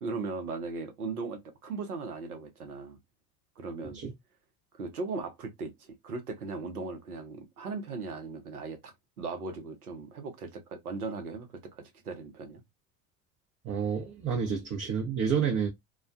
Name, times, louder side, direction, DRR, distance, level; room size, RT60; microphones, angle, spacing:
voice 1, 0.0-3.0 3.6-4.0 4.7-12.6, right 4 dB, 90° right, 0.7 m, -38 dB
voice 2, 13.6-15.7, right 7 dB, 35° right, 0.7 m, -29 dB
2.3 x 2.1 x 2.5 m
hypercardioid pair, 70°, 43 cm